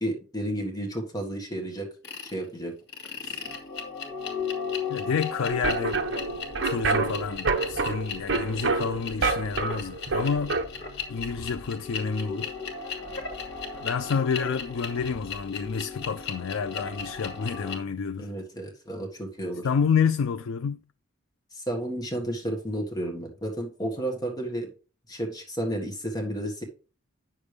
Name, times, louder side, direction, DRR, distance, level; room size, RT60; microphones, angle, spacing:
voice 1, 0.0-1.9 2.3-2.7 3.2-3.4 18.2-19.7 21.5-24.7 25.1-26.6, right 1 dB, 20° left, 1.6 m, -32 dB
sound 1, 2.0-2.3 2.9-17.8, left 5 dB, 50° left, 2.3 m, -36 dB
voice 2, 4.9-6.0 6.6-10.6 11.1-12.5 13.8-18.3 19.6-20.8, left 6 dB, 75° left, 0.4 m, -29 dB
sound 2, 5.5-10.6, right 3 dB, 60° right, 1.0 m, -28 dB
9.6 x 6.7 x 3.3 m
head